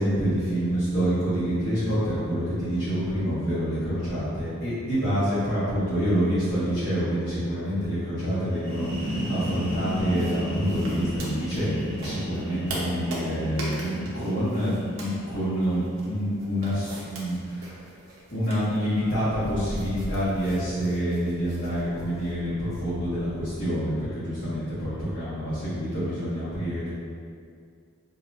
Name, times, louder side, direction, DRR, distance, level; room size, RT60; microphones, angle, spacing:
voice 1, 0.0-17.8 18.3-26.9, equal, 50° left, -15 dB, 1.4 m, -27 dB
sound 1, 8.5-16.1, equal, 15° left, 1.4 m, -34 dB
sound 2, 9.4-22.3, right 1 dB, 65° right, 0.9 m, -42 dB
sound 3, 17.8-18.1 19.2-23.6, equal, 35° right, 1.2 m, -40 dB
5.8 x 2.7 x 2.5 m, 2.2 s
head